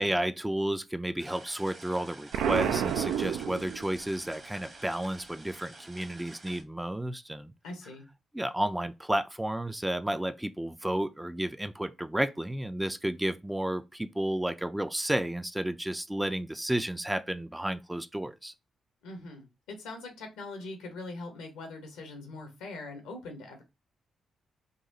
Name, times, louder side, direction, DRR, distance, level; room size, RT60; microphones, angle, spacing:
voice 1, 0.0-7.5 8.3-18.5, right 1 dB, 10° right, 0.4 m, -32 dB
sound 1, 1.2-6.6, right 2 dB, 45° right, 1.1 m, -49 dB
Explosion, 2.3-4.2, right 9 dB, 80° right, 0.3 m, -30 dB
voice 2, 7.6-8.1 19.0-23.6, left 2 dB, 85° left, 1.0 m, -42 dB
4.0 x 2.5 x 2.8 m
hypercardioid pair, 45°, 0 cm